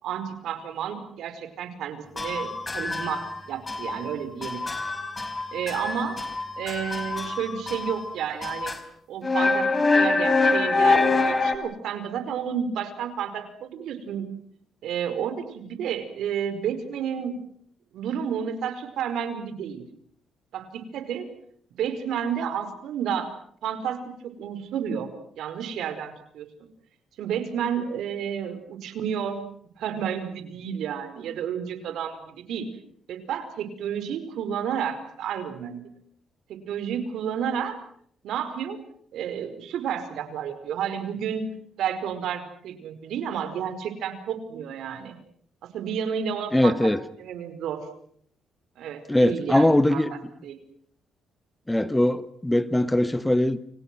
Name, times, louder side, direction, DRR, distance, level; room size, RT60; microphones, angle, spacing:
voice 1, 0.0-4.6 5.5-6.2 6.6-8.7 9.1-14.3 14.8-17.4 17.9-19.8 20.5-21.2 21.8-23.3 23.6-25.1 25.4-26.5 27.2-29.4 29.8-32.7 33.1-35.8 36.5-37.8 38.2-38.8 39.1-41.5 41.8-45.2 45.7-46.9 47.2-47.8 48.8-50.6, right 8 dB, 80° right, 10 dB, 5.0 m, -31 dB
sound 1, 2.2-3.4 3.7-4.1 4.4-8.1 8.4-8.8 9.2-11.5, left 3 dB, 25° left, 4.2 m, -25 dB
voice 2, 46.5-47.0 49.1-50.1 51.7-53.6, left 1 dB, 10° left, 13 dB, 1.5 m, -21 dB
29.5 x 26.5 x 6.2 m, 0.63 s
cardioid pair, 90°, 0 cm